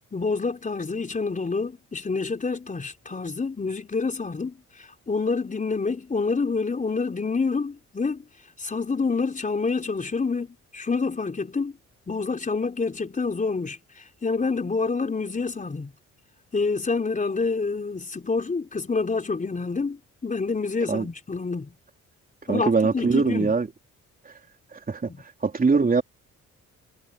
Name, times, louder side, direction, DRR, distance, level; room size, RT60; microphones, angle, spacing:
voice 1, 0.1-4.6 5.1-8.2 8.6-11.7 12.1-13.8 14.2-15.9 16.5-21.7 22.5-23.5 25.1-25.2, left 4 dB, 25° left, 4.1 m, -27 dB
voice 2, 22.5-23.7 24.7-25.1 25.4-26.0, right 4 dB, 30° right, 3.7 m, -22 dB
cardioid pair, 90°, 30 cm